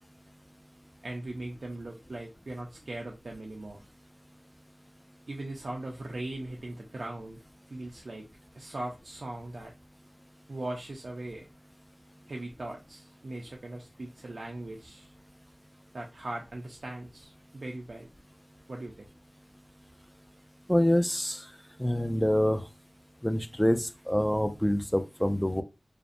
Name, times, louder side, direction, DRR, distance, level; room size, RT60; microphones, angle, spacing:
voice 1, 1.0-3.8 5.3-7.4 7.7-8.3 8.5-9.7 10.5-11.5 12.3-15.1 15.9-18.1 18.7-19.1, right 2 dB, 85° right, 0 dB, 0.4 m, -39 dB
voice 2, 20.7-21.4 21.8-22.6 23.2-25.6, equal, 10° left, 8 dB, 0.4 m, -26 dB
2.5 x 2.0 x 2.5 m, 0.26 s
wide cardioid pair, 45°, 0 cm